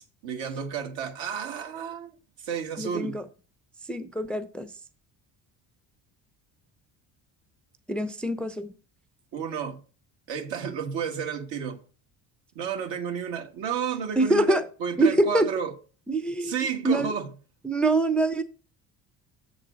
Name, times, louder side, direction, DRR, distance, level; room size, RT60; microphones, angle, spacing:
voice 1, 0.0-2.1 2.4-3.2 9.3-9.8 10.3-11.8 12.5-15.7 16.4-17.3, right 7 dB, 70° right, 1.5 m, -32 dB
voice 2, 2.8-3.2 3.9-4.7 7.9-8.7 14.2-14.6 15.0-15.5 16.1-16.5 16.8-17.1 17.6-18.4, right 2 dB, ahead, 0.5 m, -24 dB
7.1 x 3.9 x 4.9 m
supercardioid pair, 70°, 46 cm